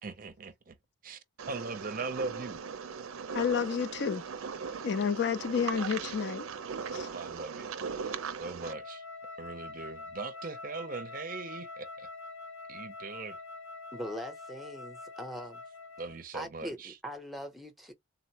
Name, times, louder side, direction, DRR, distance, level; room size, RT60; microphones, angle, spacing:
voice 1, 0.0-0.8 1.0-2.6 7.1-7.7 7.9-8.1 8.4-9.0 9.4-12.1 12.7-13.4 16.0-17.0, right 3 dB, 40° right, 0.5 m, -40 dB
sound 1, 1.4-8.7, right 6 dB, 90° right, 0.5 m, -39 dB
voice 2, 3.3-4.2 4.8-6.5 6.9-7.1 8.1-8.2, left 6 dB, 55° left, 0.3 m, -30 dB
Wind instrument woodwind instrument, 8.6-16.2, left 3 dB, 90° left, 1.5 m, -45 dB
voice 3, 13.9-15.6 16.3-17.9, equal, ahead, 0.6 m, -41 dB
3.8 x 2.0 x 2.8 m
head